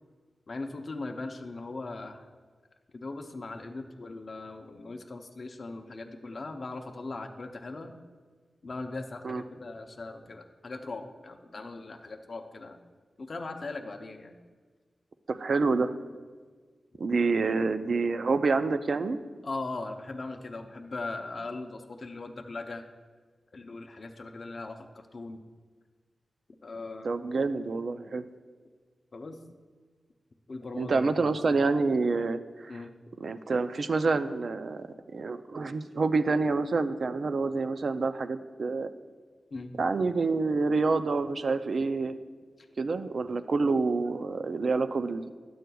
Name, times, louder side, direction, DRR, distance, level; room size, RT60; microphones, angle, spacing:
voice 1, 0.5-2.3 2.9-7.9 8.6-12.8 13.2-14.3 19.4-22.8 23.5-25.4 26.6-27.1 29.1-29.4 30.5-31.5 32.7-32.9 39.5-39.8, left 3 dB, 50° left, 4 dB, 0.6 m, -39 dB
voice 2, 15.3-15.9 17.0-19.2 27.0-28.2 30.8-32.8 33.2-34.9 35.1-38.9 39.8-42.2 42.8-45.3, right 4 dB, 60° right, 11 dB, 0.4 m, -27 dB
12.0 x 7.7 x 2.3 m, 1.5 s
wide cardioid pair, 85°, 0 cm